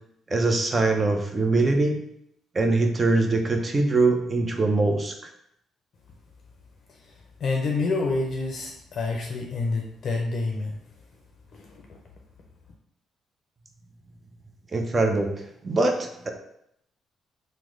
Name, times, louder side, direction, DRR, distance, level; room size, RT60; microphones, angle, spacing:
voice 1, 0.3-2.0 2.5-5.1 14.7-15.3 15.6-16.3, right 3 dB, 30° right, 4 dB, 0.5 m, -22 dB
voice 2, 7.0-10.8 11.5-11.8, left 3 dB, 55° left, 1 dB, 0.5 m, -28 dB
3.0 x 2.1 x 3.7 m, 0.74 s
cardioid pair, 90°, 0 cm